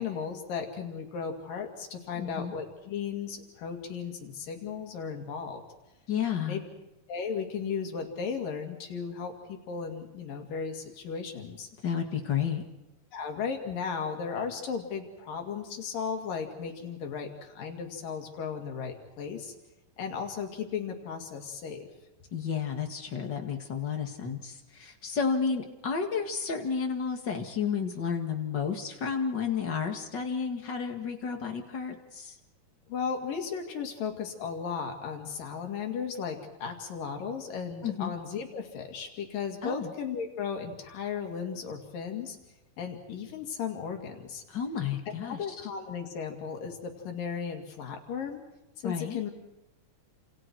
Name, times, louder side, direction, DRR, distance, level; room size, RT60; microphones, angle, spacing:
voice 1, 0.0-5.6 6.4-6.6 7.1-11.7 13.1-19.5 20.0-21.9 32.9-42.4 42.8-44.4 45.2-48.4 48.8-49.3, left 6 dB, 80° left, 3 dB, 4.1 m, -35 dB
voice 2, 2.2-2.5 6.1-6.6 11.8-12.6 22.3-32.3 37.8-38.1 39.6-39.9 44.5-45.6 48.8-49.2, left 6 dB, 40° left, 4 dB, 2.1 m, -31 dB
29.5 x 27.5 x 4.7 m, 0.98 s
omnidirectional pair, 3.9 m